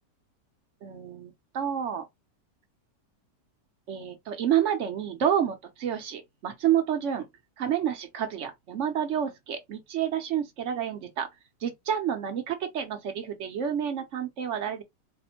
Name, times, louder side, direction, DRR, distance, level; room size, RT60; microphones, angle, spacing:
voice 1, 0.8-2.0 3.9-7.2 7.6-11.3 11.6-14.8, right 9 dB, 60° right, 0.9 m, -29 dB
4.1 x 2.1 x 2.9 m
omnidirectional pair, 1.8 m